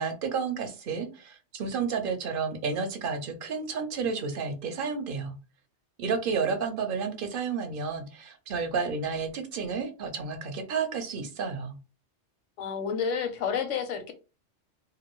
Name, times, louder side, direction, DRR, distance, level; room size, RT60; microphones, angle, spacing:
voice 1, 0.0-5.4 6.0-11.8, right 5 dB, 55° right, 6 dB, 0.7 m, -31 dB
voice 2, 12.6-14.1, left 6 dB, 85° left, 7 dB, 1.0 m, -30 dB
2.6 x 2.5 x 2.9 m, 0.32 s
omnidirectional pair, 1.3 m